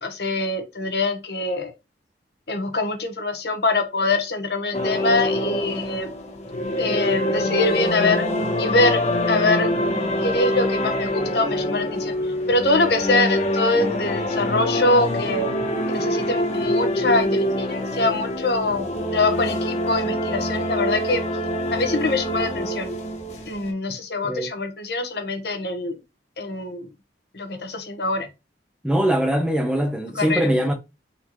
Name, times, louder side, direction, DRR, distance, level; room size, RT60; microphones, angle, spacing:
voice 1, 0.0-1.7 2.5-6.1 6.8-8.2 8.6-9.0 9.3-9.7 10.2-12.1 12.5-15.5 15.9-21.2 21.7-22.9 23.5-25.9 26.4-26.9 27.3-28.3 30.2-30.4, left 2 dB, 60° left, 1.0 m, -24 dB
sound 1, 4.7-23.7, left 1 dB, 40° left, 0.9 m, -25 dB
voice 2, 28.8-30.7, equal, 5° right, 0.6 m, -22 dB
4.4 x 4.2 x 2.9 m
head